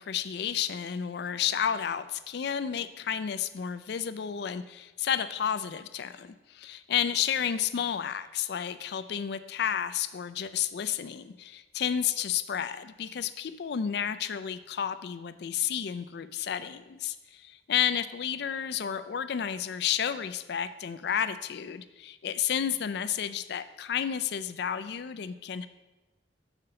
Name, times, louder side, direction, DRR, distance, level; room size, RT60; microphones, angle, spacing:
voice 1, 0.0-25.7, left 8 dB, 60° left, 13 dB, 0.4 m, -31 dB
5.8 x 4.9 x 6.7 m, 1.1 s
head